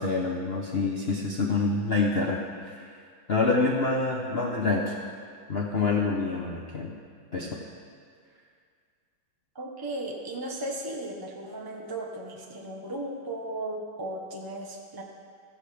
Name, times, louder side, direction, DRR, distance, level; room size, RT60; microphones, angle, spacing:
voice 1, 0.0-2.9 3.3-4.9 5.5-6.9 7.3-7.6, left 3 dB, 55° left, -2 dB, 0.6 m, -27 dB
voice 2, 9.5-15.0, right 1 dB, 25° right, -1 dB, 0.5 m, -36 dB
15.5 x 14.0 x 3.4 m, 2.1 s
omnidirectional pair, 2.3 m